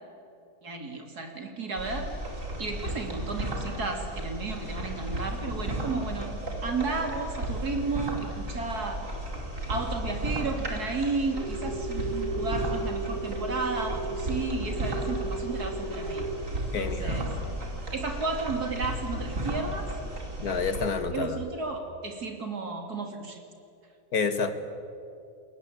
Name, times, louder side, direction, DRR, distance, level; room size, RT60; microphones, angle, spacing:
voice 1, 0.6-2.1 2.6-9.1 9.7-16.3 16.8-17.3 17.9-19.9 21.1-23.4, right 3 dB, 80° right, 4 dB, 3.6 m, -33 dB
sound 1, 1.8-20.9, right 1 dB, 55° right, 4.7 m, -34 dB
sound 2, 11.3-16.3, right 2 dB, 50° left, 6.2 m, -35 dB
voice 2, 16.7-17.2 20.4-21.4 24.1-24.5, left 5 dB, 75° left, 9 dB, 2.2 m, -28 dB
29.5 x 21.0 x 8.8 m, 2.6 s
omnidirectional pair, 1.6 m